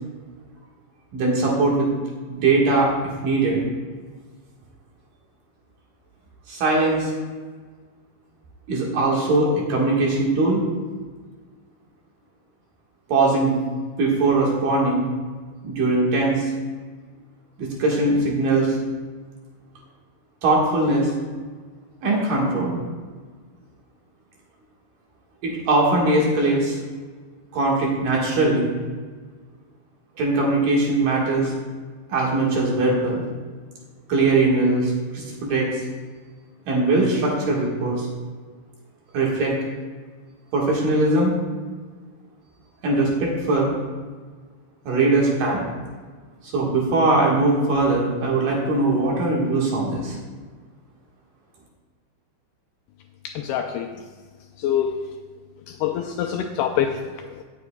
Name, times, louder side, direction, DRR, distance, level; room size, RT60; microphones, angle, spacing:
voice 1, 1.1-1.9 2.3-2.9 3.2-3.6 6.5-7.1 8.7-10.7 13.1-13.5 14.0-15.1 15.6-16.5 17.6-18.8 20.4-21.1 22.0-22.8 25.4-26.8 27.5-28.7 30.2-31.5 32.1-33.2 34.1-35.7 36.7-38.1 39.1-39.5 40.5-41.4 42.8-43.7 44.8-45.6 46.4-50.2, right 2 dB, 60° right, -3 dB, 2.9 m, -20 dB
voice 2, 53.4-53.9 54.6-55.0 55.7-57.4, left 9 dB, 85° left, 4 dB, 2.3 m, -25 dB
17.5 x 7.6 x 2.3 m, 1.5 s
omnidirectional pair, 4.9 m